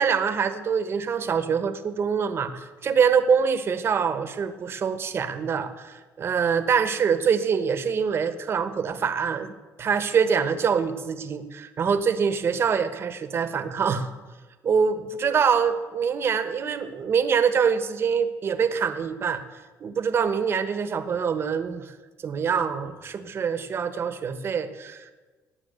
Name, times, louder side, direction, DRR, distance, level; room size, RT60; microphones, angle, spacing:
voice 1, 0.0-14.1 14.6-19.4 19.8-22.0 22.2-25.1, right 6 dB, 40° right, 10 dB, 1.1 m, -25 dB
18.0 x 6.1 x 8.2 m, 1.3 s
cardioid pair, 135°, 7 cm